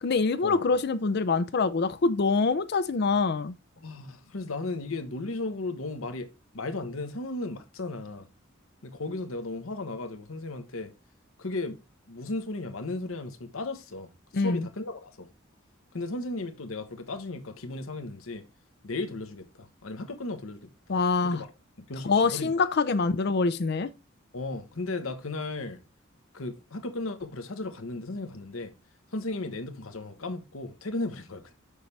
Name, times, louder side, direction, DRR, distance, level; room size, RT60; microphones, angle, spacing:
voice 1, 0.0-3.5 14.3-14.7 20.9-21.4 22.0-23.9, left 4 dB, 55° left, 0.5 m, -25 dB
voice 2, 3.8-8.3 8.8-10.9 11.4-11.8 12.1-15.3 15.9-18.4 18.8-21.5 21.8-22.5 24.3-25.8 26.3-28.7 29.1-31.5, left 2 dB, 85° left, 1.1 m, -35 dB
7.0 x 6.5 x 3.3 m
head